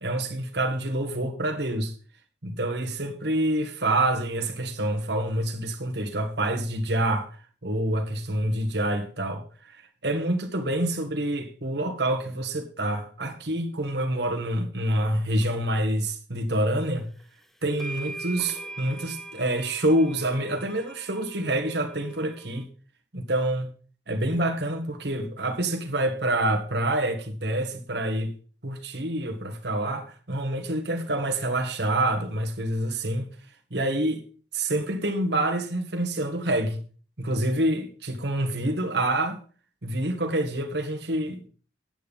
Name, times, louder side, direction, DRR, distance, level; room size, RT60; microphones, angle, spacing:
voice 1, 0.0-1.9 2.4-7.3 7.6-9.4 9.7-17.1 17.6-22.7 23.1-23.7 24.1-28.3 28.6-33.3 33.7-34.2 34.5-36.8 37.2-39.4 39.8-41.5, right 1 dB, 70° right, 1.8 m, -27 dB
sound 1, 17.2-17.3 17.8-22.6, right 2 dB, ahead, 0.8 m, -41 dB
9.3 x 9.0 x 5.4 m
head